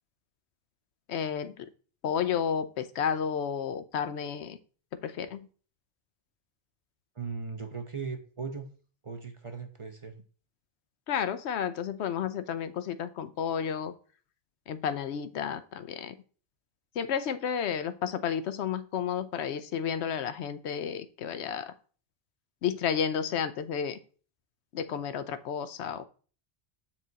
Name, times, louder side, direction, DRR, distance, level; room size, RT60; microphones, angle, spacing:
voice 1, 1.1-1.7 2.0-4.6 4.9-5.5 11.1-13.9 14.7-16.2 17.0-21.7 22.6-24.0 24.7-26.1, left 8 dB, 85° left, 12 dB, 0.9 m, -32 dB
voice 2, 7.2-8.7 9.0-10.2, right 5 dB, 35° right, 6 dB, 0.7 m, -38 dB
7.4 x 4.5 x 4.0 m, 0.40 s
omnidirectional pair, 1.1 m